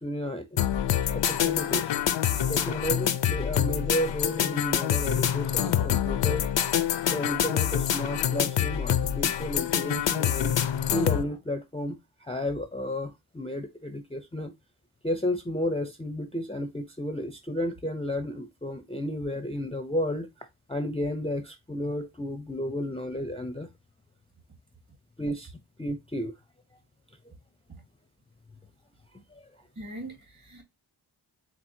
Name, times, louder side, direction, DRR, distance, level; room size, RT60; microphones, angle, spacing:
voice 1, 0.0-0.5 1.1-1.9 2.5-6.5 7.1-10.5 10.9-14.5 15.0-20.3 20.7-23.7 25.2-25.5 25.8-26.3 29.3-29.5, left 1 dB, 15° left, 0.5 m, -32 dB
sound 1, 0.6-11.2, left 10 dB, 80° left, 0.5 m, -26 dB
voice 2, 29.8-30.6, right 1 dB, 40° right, 2.3 m, -41 dB
4.4 x 3.9 x 2.6 m
wide cardioid pair, 80°, 43 cm